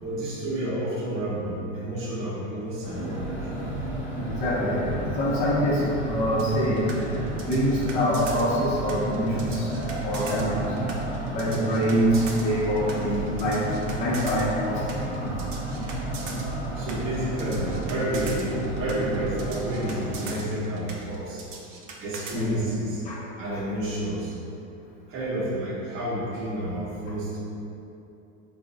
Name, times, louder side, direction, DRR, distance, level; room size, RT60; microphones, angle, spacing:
voice 1, 0.0-3.3 16.8-21.4 22.0-23.0 23.4-24.3 25.1-27.4, right 1 dB, 35° right, -7 dB, 0.8 m, -30 dB
sound 1, 2.8-20.4, right 1 dB, 5° right, 0.9 m, -32 dB
voice 2, 4.3-9.7 10.0-10.8 11.3-15.2 22.3-22.7 23.0-23.2 23.5-23.6, equal, 20° left, -7 dB, 0.5 m, -25 dB
sound 2, 6.4-22.4, right 4 dB, 80° right, 0.6 m, -41 dB
3.4 x 2.0 x 3.7 m, 2.7 s
supercardioid pair, 110°, 37 cm